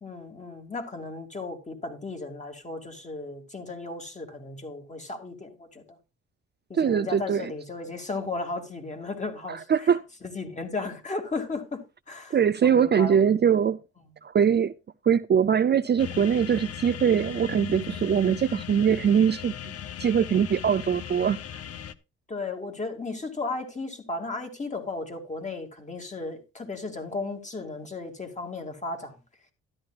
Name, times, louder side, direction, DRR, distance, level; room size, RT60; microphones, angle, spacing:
voice 1, 0.0-6.0 6.7-9.9 10.2-13.2 22.3-29.2, left 3 dB, 25° left, 2.6 m, -35 dB
voice 2, 6.7-7.5 9.5-10.0 12.3-13.8 14.2-14.7 15.0-19.7 20.0-21.6, right 8 dB, 35° right, 0.5 m, -22 dB
sound 1, 16.0-21.9, left 10 dB, 50° left, 0.8 m, -38 dB
12.5 x 11.0 x 2.5 m
cardioid pair, 90°, 30 cm